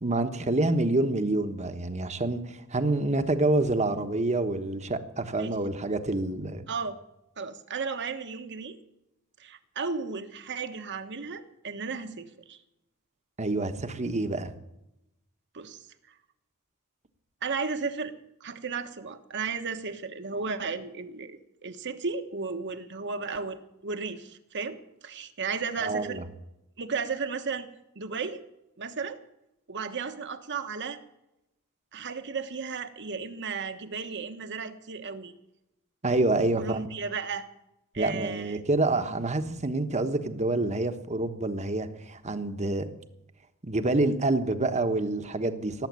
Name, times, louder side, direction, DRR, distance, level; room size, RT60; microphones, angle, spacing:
voice 1, 0.0-6.7 13.4-14.5 25.8-26.2 36.0-36.9 38.0-42.9 43.6-45.9, right 2 dB, 30° right, 8 dB, 1.2 m, -27 dB
voice 2, 6.7-7.0 7.4-8.8 9.4-12.6 15.5-15.9 17.4-18.1 18.4-26.2 26.8-27.7 27.9-28.4 28.8-29.2 29.7-31.0 31.9-35.3 36.6-37.4 37.9-38.6, right 5 dB, 55° right, 8 dB, 1.3 m, -34 dB
18.0 x 8.1 x 9.5 m, 0.88 s
head